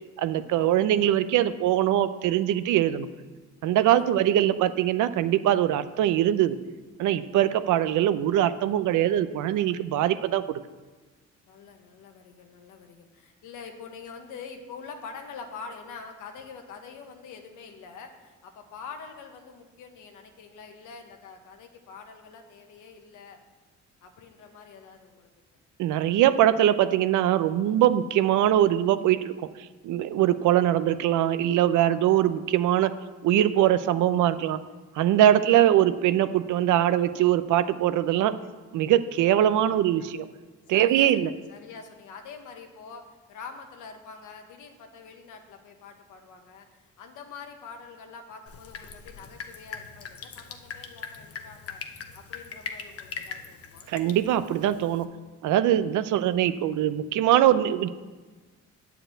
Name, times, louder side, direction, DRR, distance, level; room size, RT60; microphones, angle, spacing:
voice 1, 0.2-3.1 3.6-6.6 7.0-10.6 25.8-29.4 29.8-32.9 33.2-34.6 35.0-38.3 38.7-40.3 40.7-41.3 53.9-55.1 55.4-57.9, right 11 dB, 85° right, 12 dB, 0.6 m, -22 dB
voice 2, 11.5-23.4 24.0-25.3 40.0-40.1 40.7-46.6 47.0-51.8 52.1-53.9, left 5 dB, 85° left, 5 dB, 1.3 m, -45 dB
Drip, 48.5-55.0, left 6 dB, 50° left, 0.9 m, -41 dB
9.0 x 4.8 x 7.6 m, 1.3 s
cardioid pair, 90°, 30 cm